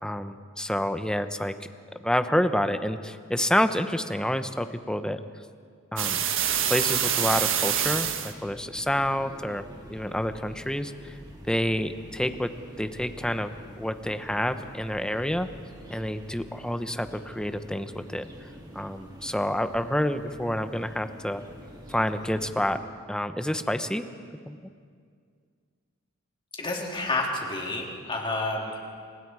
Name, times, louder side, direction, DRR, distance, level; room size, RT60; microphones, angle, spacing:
voice 1, 0.0-1.5 2.0-5.2 5.9-6.2 6.7-9.6 9.9-11.1 11.5-12.5 12.8-13.5 13.8-15.5 15.9-18.3 18.7-21.4 21.9-22.8 23.1-24.1 24.5-24.6, equal, 5° left, 9 dB, 0.9 m, -28 dB
sound 1, 6.0-8.3, right 9 dB, 65° right, 1.6 m, -26 dB
sound 2, 7.6-22.8, equal, 20° right, 3.1 m, -47 dB
voice 2, 26.6-28.8, left 2 dB, 25° left, -1 dB, 3.8 m, -29 dB
29.0 x 25.5 x 4.8 m, 2.1 s
head